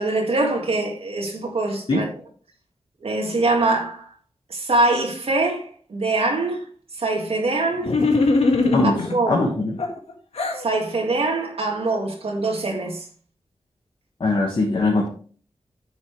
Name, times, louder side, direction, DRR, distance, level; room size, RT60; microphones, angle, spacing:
voice 1, 0.0-2.1 3.0-4.1 4.5-6.7 6.9-7.9 9.1-9.4 10.6-13.1, right 2 dB, 70° right, 2.0 m, -23 dB
sound 1, 7.8-9.2 9.8-10.6, left 3 dB, 80° left, 1.7 m, -20 dB
voice 2, 9.3-9.7 14.2-15.1, left 2 dB, 55° left, 1.7 m, -20 dB
9.8 x 7.0 x 3.3 m
wide cardioid pair, 110°, 10 cm